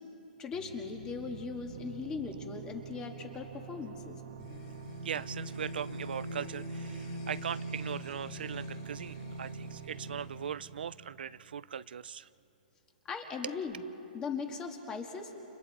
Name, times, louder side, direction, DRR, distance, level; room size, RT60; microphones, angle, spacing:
voice 1, 0.4-4.2 13.1-13.8 14.1-15.3, left 5 dB, 15° left, 4 dB, 1.6 m, -39 dB
sound 1, 0.5-11.9, right 9 dB, 50° right, 0.7 m, -48 dB
sound 2, 4.4-11.0, equal, 30° left, 1.6 m, -43 dB
voice 2, 5.0-12.3 13.4-13.6, right 8 dB, 90° right, 17 dB, 0.4 m, -39 dB
29.5 x 29.5 x 4.1 m, 2.9 s
hypercardioid pair, 165°, 5 cm